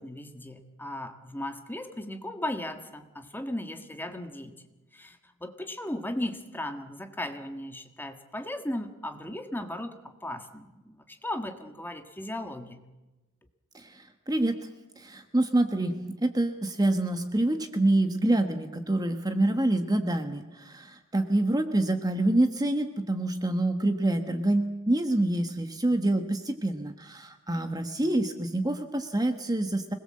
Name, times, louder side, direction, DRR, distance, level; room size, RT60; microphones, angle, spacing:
voice 1, 0.0-4.5 4.9-9.9 10.2-12.8, left 1 dB, 10° left, 6 dB, 1.7 m, -36 dB
voice 2, 13.7-14.6 15.0-29.9, right 1 dB, 20° right, 7 dB, 1.3 m, -26 dB
26.0 x 20.5 x 7.7 m, 1.1 s
head